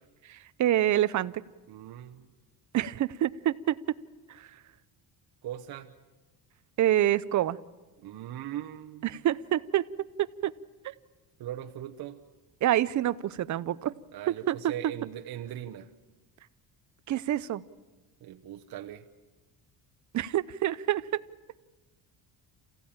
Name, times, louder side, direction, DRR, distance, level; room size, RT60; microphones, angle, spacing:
voice 1, 0.3-1.3 2.7-3.8 4.3-4.5 6.8-7.6 9.0-9.8 10.4-10.5 12.6-13.9 14.5-14.7 17.1-17.6 20.1-21.2, right 12 dB, 45° right, 17 dB, 0.7 m, -27 dB
voice 2, 1.7-2.3 5.4-5.9 8.0-9.2 11.4-12.2 14.1-15.9 18.2-19.1, right 11 dB, 60° right, 3 dB, 1.1 m, -40 dB
28.0 x 15.5 x 8.8 m, 1.2 s
cardioid pair, 125°, 43 cm